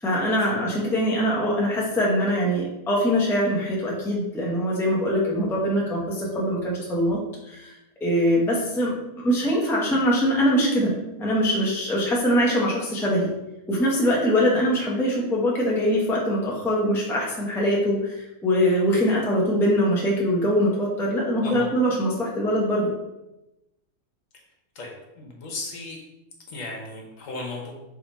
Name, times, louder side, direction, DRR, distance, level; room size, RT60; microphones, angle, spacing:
voice 1, 0.0-7.2 7.4-7.7 8.0-8.9 9.2-10.9 11.2-13.3 13.7-22.9, equal, 5° left, -4 dB, 0.6 m, -23 dB
voice 2, 24.7-26.0 26.5-27.7, left 2 dB, 65° left, -1 dB, 1.3 m, -36 dB
3.5 x 3.4 x 4.0 m, 0.96 s
omnidirectional pair, 1.5 m